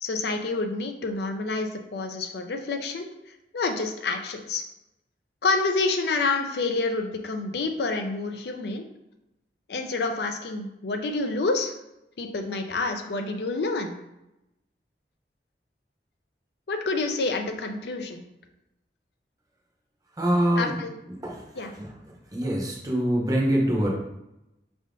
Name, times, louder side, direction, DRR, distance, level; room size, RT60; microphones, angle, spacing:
voice 1, 0.0-3.1 3.5-4.6 5.4-8.8 9.7-11.7 12.2-13.9 16.7-18.2 20.6-20.9 21.6-21.7, left 3 dB, 70° left, 6 dB, 0.5 m, -28 dB
voice 2, 20.2-20.8 21.1-21.9 22.3-23.9, right 1 dB, 20° right, -1 dB, 0.7 m, -25 dB
5.3 x 3.5 x 2.5 m, 0.87 s
head